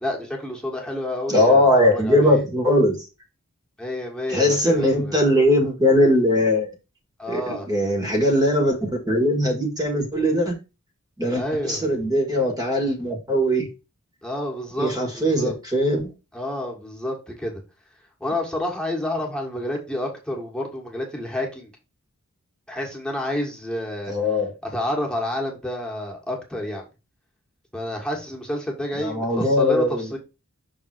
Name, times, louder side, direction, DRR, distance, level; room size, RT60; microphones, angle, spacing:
voice 1, 0.0-2.4 3.8-5.3 7.2-7.7 11.3-11.9 14.2-15.5 16.3-17.6 18.2-21.7 22.7-24.1 24.6-26.8 27.7-30.2, left 1 dB, 5° left, 1.6 m, -29 dB
voice 2, 1.3-3.0 4.3-6.7 7.3-10.6 11.2-13.7 14.8-16.1 24.1-24.5 29.0-30.1, left 1 dB, 15° right, 1.5 m, -20 dB
6.1 x 3.5 x 4.6 m
head